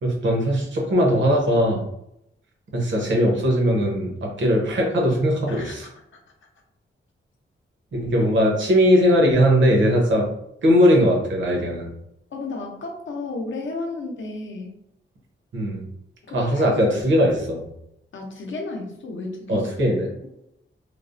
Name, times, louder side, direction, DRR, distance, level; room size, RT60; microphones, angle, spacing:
voice 1, 0.0-1.8 2.7-5.9 7.9-10.3 10.6-11.9 15.5-15.8 16.3-17.7 19.5-20.1, equal, 65° right, -1 dB, 0.9 m, -19 dB
voice 2, 5.5-5.9 12.3-14.8 16.3-16.9 18.1-19.7, left 3 dB, 70° left, 1 dB, 0.6 m, -33 dB
3.2 x 2.0 x 2.5 m, 0.79 s
wide cardioid pair, 160°, 21 cm